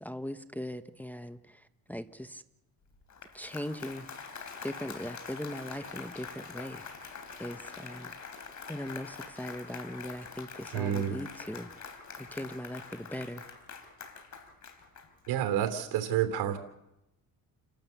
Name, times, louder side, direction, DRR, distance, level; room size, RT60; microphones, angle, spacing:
voice 1, 0.0-1.4 1.9-2.4 3.3-4.1 4.6-6.8 7.4-8.1 8.7-11.7 12.2-13.4, equal, 5° left, 9 dB, 1.0 m, -39 dB
Applause, 2.9-15.5, left 5 dB, 50° left, 3.7 m, -45 dB
voice 2, 10.7-11.2 15.3-16.6, right 10 dB, 85° right, 8 dB, 3.1 m, -29 dB
29.5 x 12.0 x 8.1 m, 0.89 s
cardioid pair, 90°, 38 cm